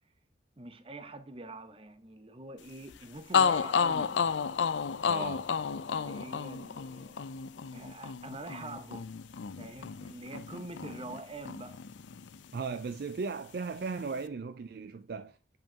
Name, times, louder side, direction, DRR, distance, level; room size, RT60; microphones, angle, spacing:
voice 1, 0.6-4.2 5.8-7.2 7.7-9.1 9.6-11.8, right 2 dB, 30° right, 0.7 m, -45 dB
sound 1, 2.9-3.0 3.3-11.2 11.5-12.6, left 6 dB, 80° left, 0.5 m, -31 dB
voice 2, 5.0-5.5 12.5-15.4, right 4 dB, 55° right, 0.4 m, -37 dB
7.2 x 5.3 x 2.8 m
head